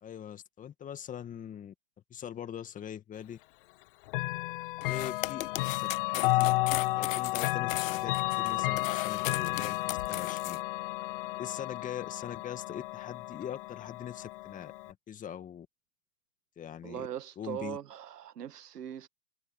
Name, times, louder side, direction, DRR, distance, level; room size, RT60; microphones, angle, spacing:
voice 1, 0.0-1.7 2.1-3.4 4.9-6.6 6.9-10.6 11.4-15.7 16.6-17.1 17.4-17.8, left 9 dB, 15° left, 2.0 m, -42 dB
Chime / Clock, 4.1-14.9, left 20 dB, 35° left, 0.7 m, -32 dB
sound 1, 4.8-10.6, left 15 dB, 55° left, 1.2 m, -37 dB
voice 2, 16.8-19.1, right 10 dB, 80° right, 1.8 m, -40 dB
hypercardioid pair, 135°, 46 cm